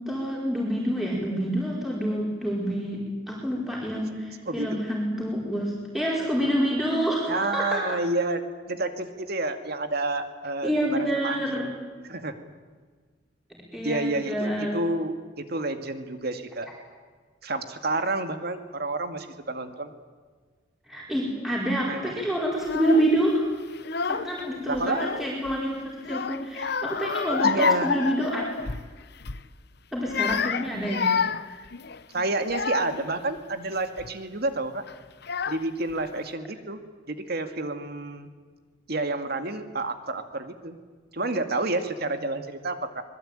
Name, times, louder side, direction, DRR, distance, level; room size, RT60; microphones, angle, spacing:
voice 1, 0.0-8.0 10.6-11.7 13.5-14.7 20.9-23.5 24.1-28.4 29.9-31.1, equal, ahead, -4 dB, 4.8 m, -27 dB
voice 2, 4.5-4.8 7.3-11.7 12.1-12.4 13.8-16.7 17.4-19.9 21.8-22.2 24.7-25.1 27.4-27.9 32.1-34.8 35.5-36.8 37.1-38.3 38.9-40.8 41.1-43.0, right 2 dB, 60° right, 8 dB, 2.2 m, -29 dB
Child speech kid speaking / Crying sobbing, 22.6-23.1 23.8-24.4 24.7-25.6 26.0-28.9 29.2-29.5 30.0-33.1 33.7-34.1 34.9-35.0 35.2-35.9, left 5 dB, 60° left, 0.9 m, -29 dB
25.5 x 21.5 x 9.0 m, 1.5 s
head